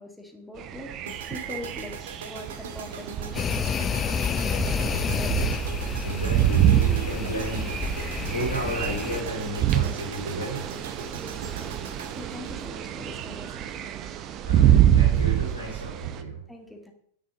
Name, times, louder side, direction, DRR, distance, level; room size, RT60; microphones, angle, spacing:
voice 1, 0.0-2.0 2.2-3.6 4.6-5.6 11.2-13.9 16.5-16.9, left 1 dB, ahead, 3 dB, 2.0 m, -42 dB
sound 1, 0.6-16.2, right 11 dB, 35° right, 0.9 m, -26 dB
sound 2, 1.0-13.2, right 4 dB, 60° right, 1.5 m, -41 dB
sound 3, 3.3-9.2, left 7 dB, 20° left, 0.5 m, -30 dB
voice 2, 6.0-10.7 14.4-16.4, right 1 dB, 90° left, -3 dB, 4.6 m, -33 dB
9.6 x 6.3 x 7.1 m, 0.67 s
figure-of-eight pair, 90°, 0 cm